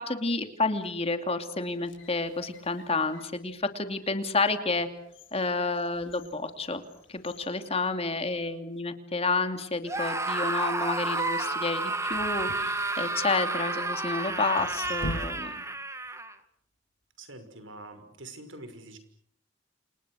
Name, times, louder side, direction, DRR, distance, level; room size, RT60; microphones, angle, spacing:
voice 1, 0.0-4.9 5.3-6.8 7.1-15.6, left 3 dB, 30° left, 7 dB, 2.7 m, -30 dB
sound 1, 1.7-3.4 4.0-4.2 4.7-8.5 8.8-8.9 9.7-10.1 12.1-13.4 14.2-15.8 16.0-16.1, equal, 80° left, 6.9 m, -44 dB
Screaming, 9.8-16.3, right 2 dB, 15° right, 1.9 m, -31 dB
voice 2, 17.2-19.0, right 2 dB, 80° right, 9 dB, 6.0 m, -45 dB
29.5 x 28.0 x 6.5 m, 0.69 s
head